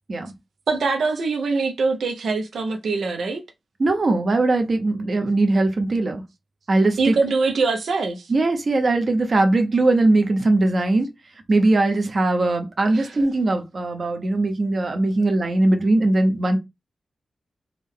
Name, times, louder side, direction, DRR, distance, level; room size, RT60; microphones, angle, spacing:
voice 1, 0.7-3.4 7.0-8.3 12.9-13.2, right 4 dB, 85° right, 0.6 m, -23 dB
voice 2, 3.8-6.2 6.7-7.1 8.3-11.1 11.5-16.6, right 2 dB, 45° right, 0.7 m, -20 dB
3.5 x 2.2 x 3.6 m
wide cardioid pair, 130°, 0 cm